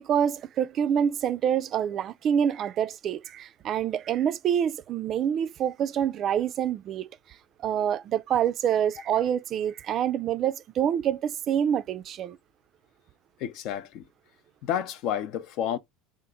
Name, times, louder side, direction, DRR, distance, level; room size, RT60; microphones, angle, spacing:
voice 1, 0.0-7.1 7.6-12.4, right 9 dB, 45° right, 0.3 m, -26 dB
voice 2, 13.4-14.0 14.6-15.8, left 10 dB, 60° left, 0.5 m, -30 dB
2.9 x 2.5 x 3.6 m
supercardioid pair, 95°, 0 cm